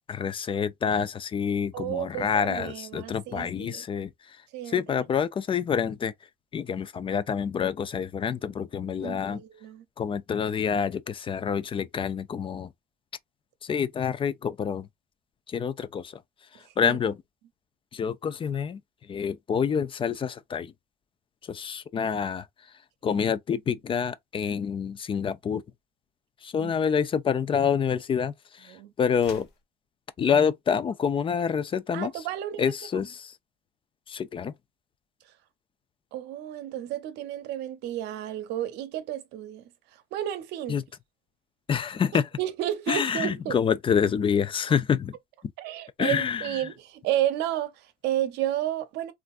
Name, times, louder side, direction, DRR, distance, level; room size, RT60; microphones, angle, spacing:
voice 1, 0.1-6.1 6.5-9.4 10.0-12.7 13.6-14.9 15.5-16.2 16.5-17.2 17.9-18.8 19.1-20.7 21.4-22.5 23.0-25.6 26.4-29.5 30.2-32.2 32.6-33.4 34.1-34.6 40.7-40.8 41.7-42.3 42.9-45.2 46.0-46.6, left 7 dB, 30° left, 0.4 m, -27 dB
voice 2, 1.7-3.8 4.5-4.8 9.0-9.8 16.8-17.0 23.1-23.3 26.6-26.7 28.7-28.9 31.9-32.7 36.1-39.7 40.1-40.8 42.4-43.6 45.6-49.1, right 12 dB, 85° right, 0.7 m, -32 dB
sound 1, 29.1-29.7, left 5 dB, 85° left, 1.3 m, -46 dB
3.3 x 2.5 x 2.4 m
cardioid pair, 110°, 17 cm